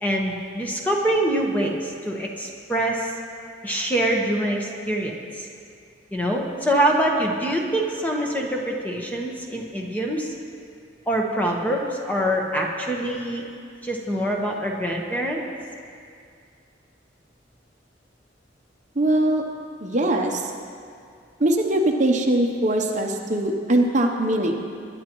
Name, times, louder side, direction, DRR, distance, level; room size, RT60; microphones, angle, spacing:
voice 1, 0.0-3.1 3.6-5.5 6.1-10.3 11.1-13.5 13.8-15.4, right 1 dB, 10° left, -1 dB, 1.2 m, -25 dB
voice 2, 19.0-19.4 19.8-20.4 21.4-24.5, right 1 dB, 40° right, 2 dB, 0.8 m, -21 dB
22.0 x 10.5 x 3.1 m, 2.4 s
head